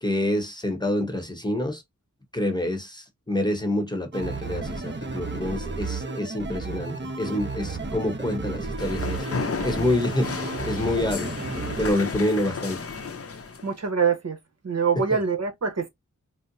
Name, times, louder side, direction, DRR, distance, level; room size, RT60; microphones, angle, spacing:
voice 1, 0.0-1.8 2.3-9.3 9.6-10.3 10.6-11.3 11.8-12.8, left 1 dB, 15° left, 1.0 m, -27 dB
sound 1, 4.1-11.9, right 3 dB, 35° right, 1.0 m, -33 dB
sound 2, 8.8-13.7, left 4 dB, 50° left, 0.7 m, -33 dB
voice 2, 13.6-14.4 14.6-15.9, right 6 dB, 55° right, 1.1 m, -24 dB
4.3 x 2.1 x 2.6 m
wide cardioid pair, 75°, 31 cm